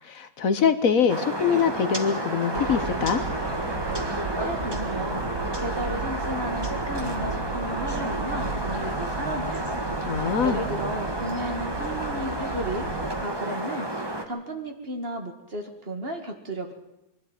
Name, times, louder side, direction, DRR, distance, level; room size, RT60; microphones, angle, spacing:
voice 1, 0.0-3.2 10.0-10.6, left 7 dB, 65° left, 11 dB, 1.4 m, -23 dB
sound 1, 1.1-14.2, right 1 dB, 15° right, 1.7 m, -31 dB
sound 2, 2.5-13.2, right 4 dB, 80° right, 2.1 m, -35 dB
voice 2, 4.4-5.3 5.6-9.7 10.4-12.9 13.1-13.9 14.3-16.7, right 1 dB, 40° right, 4 dB, 2.4 m, -33 dB
23.0 x 12.0 x 9.3 m, 0.90 s
omnidirectional pair, 1.6 m